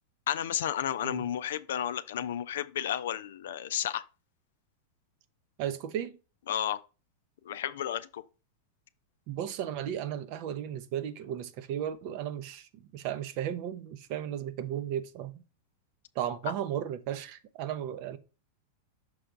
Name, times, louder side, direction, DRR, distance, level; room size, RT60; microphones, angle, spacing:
voice 1, 0.3-4.0 6.5-6.8 7.4-8.2, left 10 dB, 60° left, 0.4 m, -32 dB
voice 2, 5.6-6.1 9.3-15.4 16.2-18.2, right 10 dB, 45° right, 0.7 m, -35 dB
6.3 x 4.4 x 3.7 m
figure-of-eight pair, 90°, 0 cm